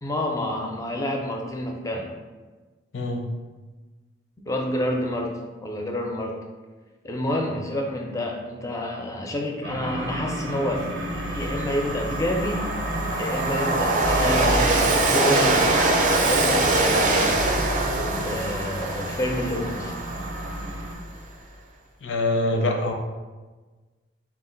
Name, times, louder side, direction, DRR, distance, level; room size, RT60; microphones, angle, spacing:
voice 1, 0.0-2.1 4.5-6.4 7.0-12.7 13.2-15.7 16.1-17.4 17.8-19.9, left 1 dB, 15° left, 1 dB, 0.4 m, -29 dB
voice 2, 2.9-3.3 22.0-22.9, left 2 dB, 85° left, 2 dB, 0.6 m, -24 dB
sound 1, 9.6-20.9, right 1 dB, 90° right, 0.6 m, -34 dB
Train, 10.2-10.3 10.7-21.1, right 2 dB, 45° right, 0.4 m, -23 dB
4.1 x 2.4 x 3.8 m, 1.3 s
head